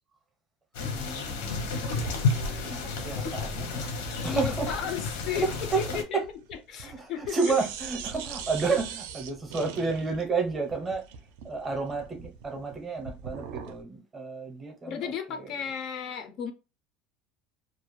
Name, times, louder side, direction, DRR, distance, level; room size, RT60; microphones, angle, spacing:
sound 1, 0.7-6.0, left 4 dB, 85° left, 0.7 m, -31 dB
voice 1, 0.8-1.9 2.6-3.9 4.2-4.7 5.3-5.9 6.1-6.2 6.8-11.0 11.4-15.5, right 4 dB, 15° right, 0.6 m, -31 dB
sound 2, 1.9-7.0 7.2-13.8, right 6 dB, 75° right, 0.4 m, -42 dB
voice 2, 4.2-6.2 6.7-7.5 8.7-8.8 14.9-16.5, left 8 dB, 40° left, 0.3 m, -34 dB
2.3 x 2.0 x 3.0 m
cardioid pair, 175°, 0 cm